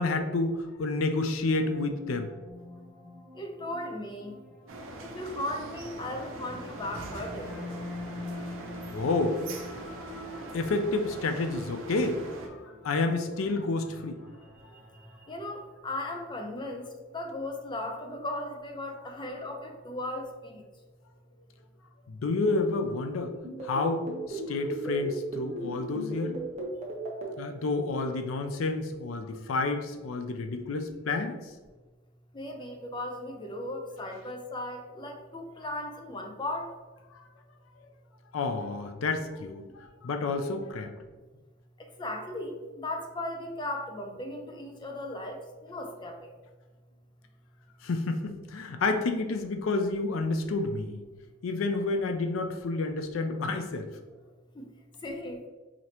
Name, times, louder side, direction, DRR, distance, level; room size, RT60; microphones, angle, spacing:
voice 1, 0.0-2.3 8.9-9.4 10.3-12.6 12.8-14.2 22.1-23.3 23.6-26.4 27.4-31.5 37.1-37.3 38.3-40.9 47.8-51.0 51.4-53.9, left 3 dB, 85° left, 7 dB, 0.4 m, -30 dB
sound 1, 0.9-16.3, left 2 dB, 5° left, 1.3 m, -46 dB
voice 2, 3.4-4.3 5.0-7.5 15.3-16.8 17.1-20.6 32.3-36.7 42.0-46.3 54.6-54.7 55.0-55.4, left 1 dB, 25° left, 3 dB, 0.5 m, -36 dB
sound 2, 4.7-12.5, right 2 dB, 80° right, 0.6 m, -42 dB
sound 3, 23.4-27.3, right 1 dB, 35° right, 0.8 m, -35 dB
5.0 x 2.7 x 2.9 m, 1.3 s
head